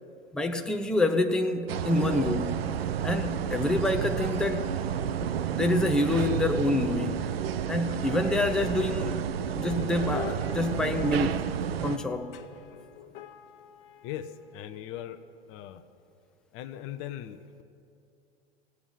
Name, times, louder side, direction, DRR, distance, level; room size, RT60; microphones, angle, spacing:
voice 1, 0.3-2.6 3.0-4.7 5.2-7.2 7.7-9.2 9.5-11.4 11.8-12.4, left 2 dB, ahead, 6 dB, 0.7 m, -27 dB
sound 1, 1.7-12.0, right 9 dB, 75° right, 0.6 m, -31 dB
sound 2, 7.8-14.8, left 11 dB, 65° left, 1.0 m, -45 dB
voice 2, 14.0-15.2 15.5-15.8 16.5-17.6, left 11 dB, 45° left, 12 dB, 0.8 m, -39 dB
16.0 x 9.0 x 8.8 m, 2.6 s
hypercardioid pair, 90°, 31 cm